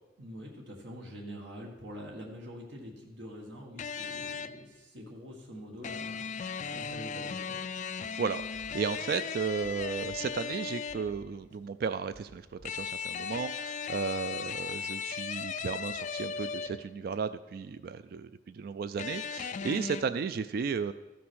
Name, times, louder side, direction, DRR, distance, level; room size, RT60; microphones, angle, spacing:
voice 1, 0.2-6.3 6.7-7.6, equal, 70° right, 0 dB, 1.7 m, -45 dB
sound 1, 3.8-4.7 5.8-11.2 12.6-17.0 19.0-20.0, left 6 dB, 40° left, 0.3 m, -37 dB
voice 2, 8.1-20.9, right 5 dB, 55° right, 12 dB, 0.3 m, -34 dB
sound 2, 8.4-9.3 9.6-10.6 10.9-11.8 12.1-13.1, left 1 dB, 70° left, 1.5 m, -56 dB
13.5 x 6.0 x 6.3 m, 1.2 s
head